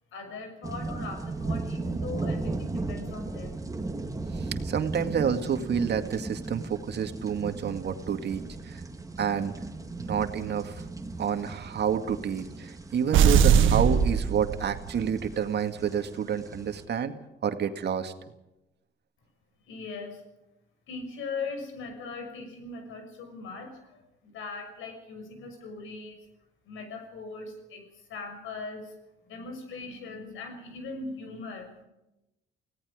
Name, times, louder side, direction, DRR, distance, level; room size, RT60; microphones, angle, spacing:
voice 1, 0.1-3.6 19.7-20.2 20.9-26.2 26.6-28.9 29.3-31.9, left 4 dB, 85° left, 6 dB, 6.2 m, -40 dB
sound 1, 0.6-16.8, right 3 dB, 15° right, 1.9 m, -37 dB
voice 2, 4.3-8.8 9.2-9.5 10.1-10.8 11.2-17.1 17.4-18.1, right 7 dB, 60° right, 7 dB, 2.1 m, -29 dB
sound 2, 13.1-15.0, right 7 dB, 85° right, 1.4 m, -20 dB
29.5 x 17.5 x 5.1 m, 0.92 s
cardioid pair, 90°, 20 cm